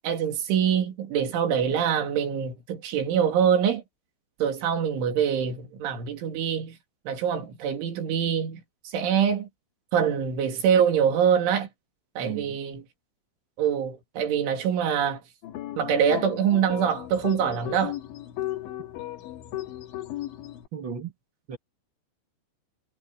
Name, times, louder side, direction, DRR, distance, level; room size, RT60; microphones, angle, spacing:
voice 1, 0.0-3.8 4.4-6.8 7.1-9.5 9.9-11.7 12.2-12.8 13.6-15.2 15.8-18.0, right 8 dB, 90° right, 5.3 m, -24 dB
voice 2, 12.2-12.6 20.7-21.1 21.5-21.6, right 7 dB, 70° right, 1.1 m, -34 dB
sound 1, 15.4-20.7, left 14 dB, 80° left, 3.9 m, -36 dB
omnidirectional pair, 5.3 m